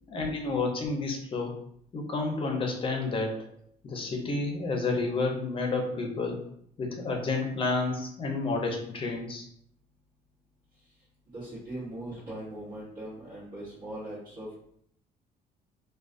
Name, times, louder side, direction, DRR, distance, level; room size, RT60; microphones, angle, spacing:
voice 1, 0.1-1.6 1.9-3.4 3.8-6.4 6.8-9.5, left 3 dB, 30° left, 1 dB, 0.6 m, -30 dB
voice 2, 11.3-14.6, right 1 dB, 55° right, -11 dB, 1.0 m, -40 dB
2.3 x 2.2 x 2.4 m, 0.69 s
cardioid pair, 110°, 17 cm